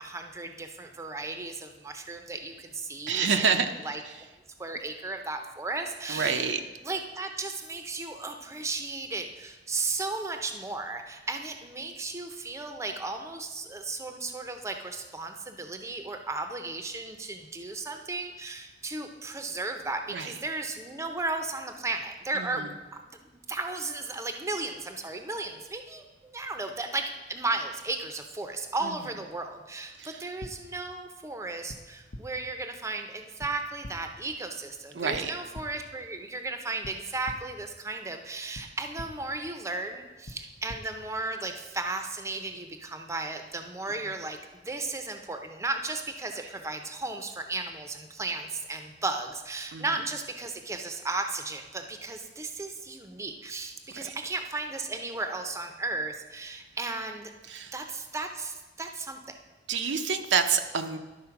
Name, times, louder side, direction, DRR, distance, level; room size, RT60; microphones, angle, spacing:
voice 1, 0.0-3.5 3.8-4.0 4.6-6.5 6.8-22.8 23.1-23.2 23.5-26.1 26.3-44.4 44.6-57.3 57.7-59.2, right 3 dB, 15° right, 5 dB, 0.6 m, -35 dB
voice 2, 3.1-3.6 6.1-6.6 20.1-20.3 22.4-22.5 28.8-28.9 30.0-30.1 35.0-35.3 49.7-49.8 54.0-54.1 57.5-57.7 59.7-61.0, right 6 dB, 75° right, 6 dB, 0.6 m, -27 dB
sound 1, 30.4-30.5 31.7-31.8 32.1-32.2 33.4-33.5 33.8-33.9 35.1-35.2 35.5-35.6 36.8-36.9 37.2-37.4 38.5-38.6 39.0-39.1 40.2-40.4 40.7-40.8, left 1 dB, 50° left, 0.7 m, -41 dB
11.0 x 4.4 x 5.8 m, 1.2 s
head